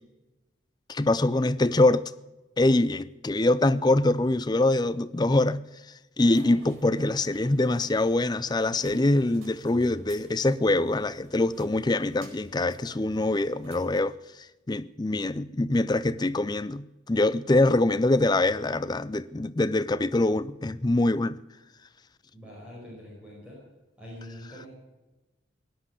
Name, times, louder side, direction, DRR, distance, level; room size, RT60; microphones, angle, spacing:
voice 1, 0.9-2.1 2.6-5.6 6.2-14.2 14.7-21.4, left 2 dB, 20° left, 0.4 m, -24 dB
sound 1, 6.3-14.0, right 1 dB, 80° right, 4.7 m, -52 dB
voice 2, 22.3-23.6 24.0-24.7, equal, 5° right, 5.3 m, -44 dB
17.0 x 9.8 x 8.3 m
head